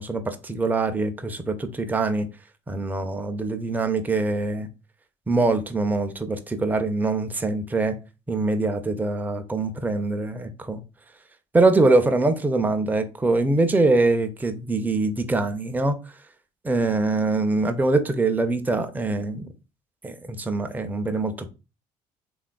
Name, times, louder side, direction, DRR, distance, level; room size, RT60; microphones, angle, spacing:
voice 1, 0.0-2.3 2.7-4.7 5.3-8.0 8.3-10.8 11.5-16.0 16.6-19.5 20.0-21.5, right 3 dB, 10° right, 0.4 m, -23 dB
3.3 x 2.3 x 2.2 m
figure-of-eight pair, 50°, 18 cm